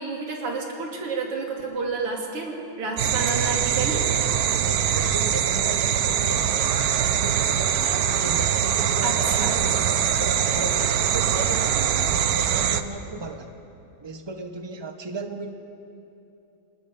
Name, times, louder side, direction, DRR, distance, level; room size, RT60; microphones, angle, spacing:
voice 1, 0.0-4.0 9.0-9.6, right 4 dB, 85° right, 0 dB, 3.5 m, -30 dB
sound 1, 3.0-12.8, right 9 dB, 65° right, 0.9 m, -23 dB
voice 2, 4.6-9.6 10.0-13.6 14.0-15.5, right 3 dB, 25° right, 6 dB, 0.5 m, -35 dB
27.5 x 20.0 x 5.3 m, 2.9 s
omnidirectional pair, 2.4 m